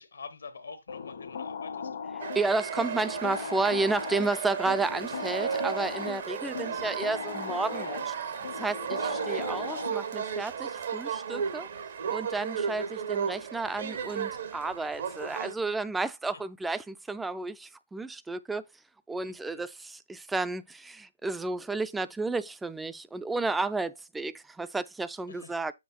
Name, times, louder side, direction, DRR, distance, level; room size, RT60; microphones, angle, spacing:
voice 1, 0.0-2.0 9.2-9.6 16.3-16.4 19.2-19.6 25.3-25.6, left 5 dB, 80° left, 1.4 m, -47 dB
sound 1, 0.9-10.3, left 6 dB, 60° left, 1.1 m, -38 dB
sound 2, 2.2-15.5, right 7 dB, 60° right, 0.9 m, -34 dB
voice 2, 2.3-8.1 8.6-11.7 12.1-18.6 19.1-25.7, right 3 dB, 5° right, 0.4 m, -32 dB
7.3 x 3.5 x 4.3 m
hypercardioid pair, 140°, 0 cm